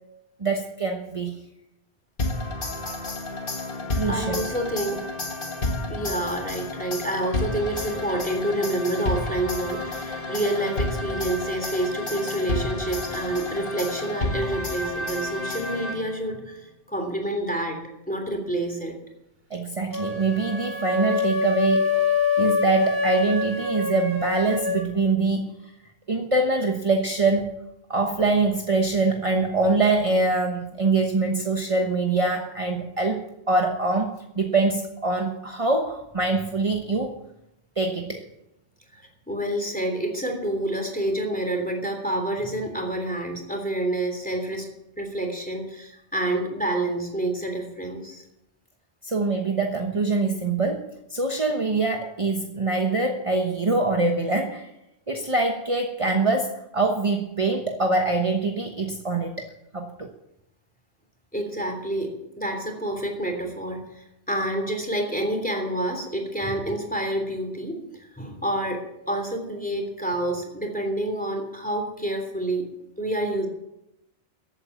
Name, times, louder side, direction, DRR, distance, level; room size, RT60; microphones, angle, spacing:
voice 1, 0.4-1.4 3.9-4.5 19.5-22.0 22.4-25.5 26.1-27.5 27.9-37.1 37.8-38.2 49.0-54.7 55.1-60.1, right 3 dB, 30° right, 3 dB, 1.2 m, -24 dB
sound 1, 2.2-16.3, left 2 dB, 55° left, 1.8 m, -30 dB
voice 2, 4.0-5.0 5.9-17.8 18.1-19.0 38.9-44.7 45.0-48.2 61.3-72.7 73.0-73.5, right 1 dB, 10° left, 2 dB, 3.2 m, -28 dB
sound 2, 19.9-24.9, left 4 dB, 70° right, 2.5 m, -25 dB
14.5 x 8.9 x 7.1 m, 0.87 s
omnidirectional pair, 1.1 m